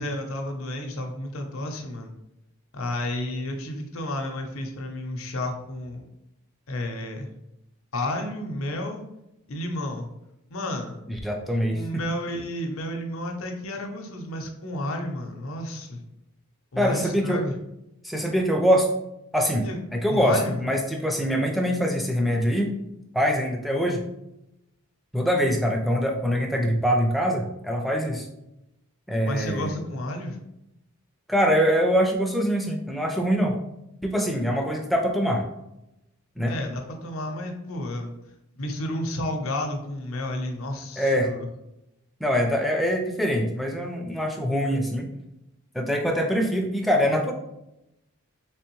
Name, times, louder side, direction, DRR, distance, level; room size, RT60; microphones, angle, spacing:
voice 1, 0.0-2.1 2.7-6.0 6.7-7.3 7.9-9.0 9.5-10.1 10.5-10.9 11.7-16.0 16.7-17.5 19.6-19.8 20.1-20.6 29.3-30.4 36.5-38.1 38.5-41.5, left 1 dB, 65° left, 3 dB, 0.6 m, -31 dB
voice 2, 11.1-11.8 16.8-17.5 18.0-18.9 19.3-19.7 19.9-22.7 23.1-24.0 25.1-28.3 29.1-29.7 31.3-33.6 34.0-35.5 36.4-36.6 41.0-41.3 42.2-45.1 45.7-47.3, equal, ahead, 2 dB, 0.4 m, -24 dB
3.4 x 3.3 x 3.0 m, 0.87 s
head